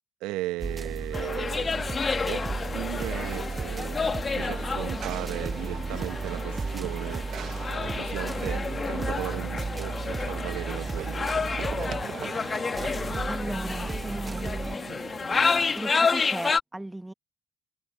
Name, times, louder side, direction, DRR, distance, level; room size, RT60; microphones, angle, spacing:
voice 1, 0.2-1.9 2.3-11.9, right 18 dB, 85° right, 1.1 m, -37 dB
sound 1, 0.6-14.8, right 3 dB, 25° right, 0.6 m, -35 dB
sound 2, 1.1-16.6, left 5 dB, 35° left, 1.9 m, -30 dB
Run / Train, 1.5-15.9, right 9 dB, 60° right, 0.9 m, -42 dB
voice 2, 13.3-15.2 15.7-17.1, right 1 dB, 10° right, 1.4 m, -37 dB
supercardioid pair, 65°, 0 cm